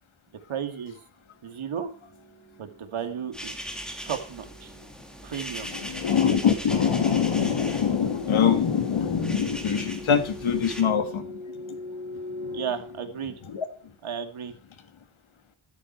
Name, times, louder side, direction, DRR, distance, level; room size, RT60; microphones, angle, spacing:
voice 1, 0.5-1.0 1.4-1.9 2.6-3.5 4.1-4.7 5.2-5.7 12.5-13.4 14.0-14.5, right 8 dB, 85° right, 7 dB, 2.6 m, -33 dB
sound 1, 1.1-13.8, left 2 dB, 20° right, 5.1 m, -44 dB
sound 2, 3.3-10.8, equal, ahead, 2.6 m, -40 dB
voice 2, 5.7-11.4 11.7-11.8 12.4-12.5 13.5-13.7, left 7 dB, 75° left, 9 dB, 2.2 m, -24 dB
14.0 x 12.0 x 4.7 m, 0.38 s
wide cardioid pair, 155°, 48 cm